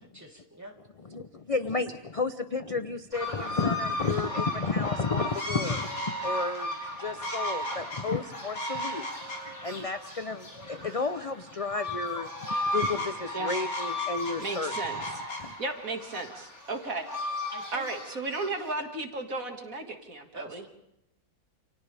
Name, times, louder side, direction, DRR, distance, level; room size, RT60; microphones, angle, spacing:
voice 1, 0.0-0.8 17.5-17.9 20.3-20.6, right 1 dB, 10° right, 0 dB, 3.4 m, -44 dB
voice 2, 1.1-9.0 9.4-12.3 12.7-14.7 15.4-15.5, left 4 dB, 35° left, 9 dB, 0.5 m, -32 dB
sound 1, 3.1-18.7, left 1 dB, 60° left, 6.5 m, -35 dB
voice 3, 14.4-15.2 15.6-17.0 17.7-20.7, right 2 dB, 60° right, 4 dB, 2.5 m, -34 dB
30.0 x 29.0 x 3.5 m, 0.83 s
omnidirectional pair, 1.7 m